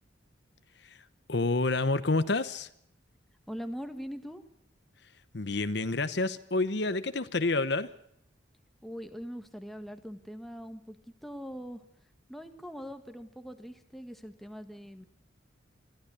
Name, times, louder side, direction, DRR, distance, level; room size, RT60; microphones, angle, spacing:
voice 1, 1.3-2.7 5.3-7.9, left 3 dB, 60° left, 13 dB, 1.0 m, -28 dB
voice 2, 3.5-4.4 8.8-11.0 11.2-11.8 12.3-15.0, equal, ahead, 7 dB, 1.6 m, -42 dB
22.0 x 15.0 x 8.3 m, 0.71 s
head